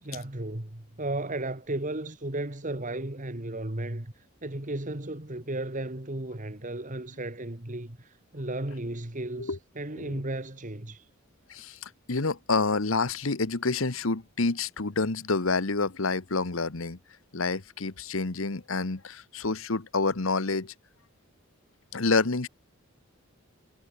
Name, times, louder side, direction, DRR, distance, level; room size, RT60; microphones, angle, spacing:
voice 1, 0.0-11.1, right 1 dB, 40° right, 2.1 m, -35 dB
voice 2, 11.5-17.0 17.3-20.7 21.9-22.5, left 3 dB, 75° left, 1.3 m, -28 dB
head